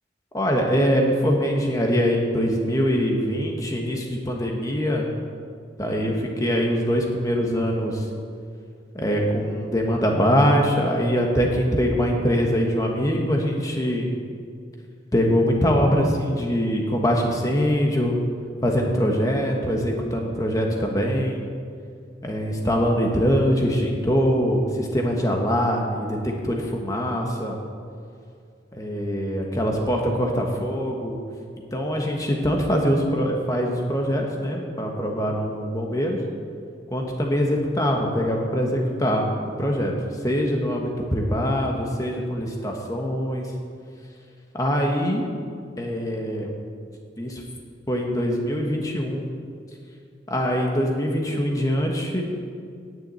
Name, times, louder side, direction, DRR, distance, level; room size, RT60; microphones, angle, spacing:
voice 1, 0.3-5.1 5.8-8.0 8.9-14.1 15.1-18.2 18.6-21.4 22.2-27.6 28.7-31.2 31.7-36.2 36.9-39.3 39.6-39.9 40.2-43.5 44.5-45.2 45.8-46.5 47.2-47.4 47.9-49.2 50.3-52.2, equal, 20° left, 1 dB, 1.3 m, -23 dB
9.9 x 6.9 x 8.6 m, 2.3 s
head